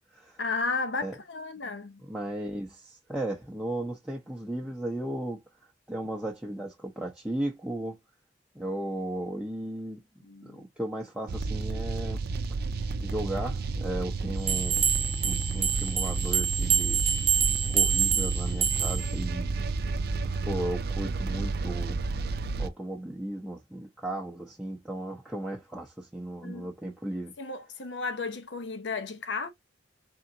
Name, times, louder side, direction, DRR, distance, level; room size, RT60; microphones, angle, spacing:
voice 1, 0.4-2.0 10.2-10.7 26.4-26.7 27.4-29.5, left 4 dB, 70° left, 0.8 m, -33 dB
voice 2, 2.0-5.4 5.9-8.0 8.5-10.0 10.4-12.2 13.0-14.9 15.2-17.1 17.7-19.5 20.4-22.0 22.6-27.3, right 1 dB, 5° right, 0.6 m, -35 dB
sound 1, 11.3-22.7, right 3 dB, 55° right, 0.5 m, -31 dB
sound 2, 14.5-19.1, right 8 dB, 30° right, 0.9 m, -27 dB
3.8 x 3.5 x 2.6 m
head